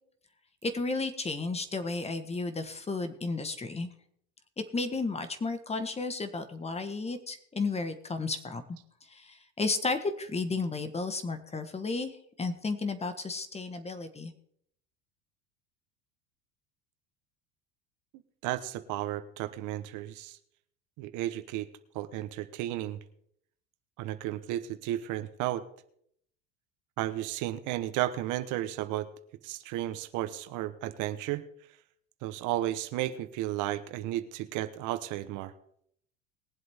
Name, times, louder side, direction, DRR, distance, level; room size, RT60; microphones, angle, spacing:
voice 1, 0.6-3.9 4.6-8.6 9.1-14.3, left 3 dB, 20° left, 9 dB, 1.4 m, -33 dB
voice 2, 18.4-20.4 21.0-21.7 21.9-23.0 24.0-25.6 27.0-29.1 29.4-31.4 32.2-35.5, right 14 dB, 65° right, 11 dB, 1.1 m, -33 dB
21.0 x 7.8 x 3.6 m, 0.68 s
supercardioid pair, 110°, 33 cm